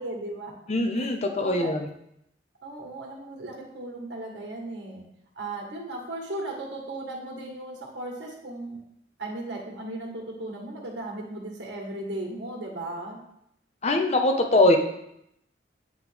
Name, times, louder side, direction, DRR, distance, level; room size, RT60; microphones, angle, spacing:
voice 1, 0.0-0.5 0.9-1.1 1.4-1.7 2.6-5.0 5.3-8.8 9.2-13.2, right 2 dB, 75° right, -1 dB, 1.5 m, -36 dB
voice 2, 0.7-1.9 13.8-14.8, left 2 dB, 35° left, 4 dB, 0.6 m, -22 dB
9.2 x 3.1 x 3.4 m, 0.78 s
head